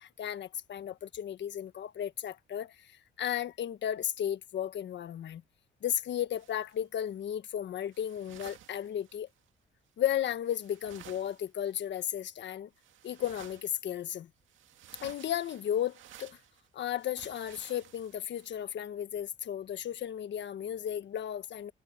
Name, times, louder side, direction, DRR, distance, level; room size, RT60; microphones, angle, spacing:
voice 1, 0.0-5.4 5.8-9.3 10.0-12.7 13.0-14.3 15.0-16.4 16.7-21.7, left 10 dB, 65° left, 1.5 m, -34 dB
sound 1, 6.3-7.0 7.9-9.5 10.2-10.3 10.4-12.1 12.7-14.1 14.4-18.5, right 11 dB, 75° right, 2.1 m, -54 dB
cardioid pair, 90°, 20 cm